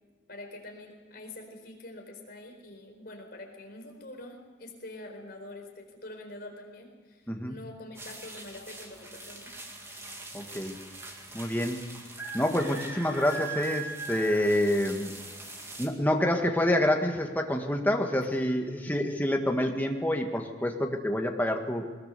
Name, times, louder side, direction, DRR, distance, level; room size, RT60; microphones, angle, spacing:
voice 1, 0.3-9.5 18.4-18.5, left 1 dB, 50° left, 2 dB, 4.5 m, -45 dB
sound 1, 7.9-15.9, right 3 dB, 15° right, 2.3 m, -41 dB
voice 2, 10.3-10.8 11.3-11.8 12.3-15.1 15.8-21.8, left 1 dB, 10° left, 3 dB, 1.7 m, -27 dB
21.0 x 20.5 x 6.9 m, 1.5 s
head